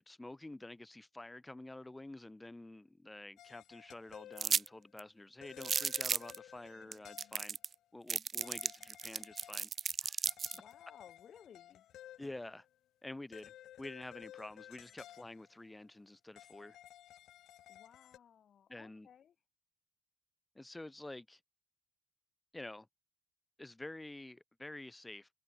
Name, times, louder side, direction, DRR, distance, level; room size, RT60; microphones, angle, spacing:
voice 1, 0.0-7.6 7.9-9.7 10.0-10.3 12.2-12.7 13.0-13.5 13.8-16.8 18.7-19.1 20.6-21.4 22.5-22.9 23.6-25.3, left 2 dB, 15° left, 2.1 m, -49 dB
sound 1, 3.4-4.9 5.4-7.6 8.4-9.6 9.9-10.0 10.3-12.7 13.3-15.7 16.4-18.2, left 12 dB, 80° left, 1.6 m, -55 dB
sound 2, 4.4-4.7 5.0-5.1 5.6-6.4 6.9-7.0 7.2-7.7 8.1-10.6, right 6 dB, 45° right, 0.3 m, -34 dB
voice 2, 10.5-11.9 17.7-19.3, left 8 dB, 60° left, 3.0 m, -59 dB
cardioid pair, 90°, 0 cm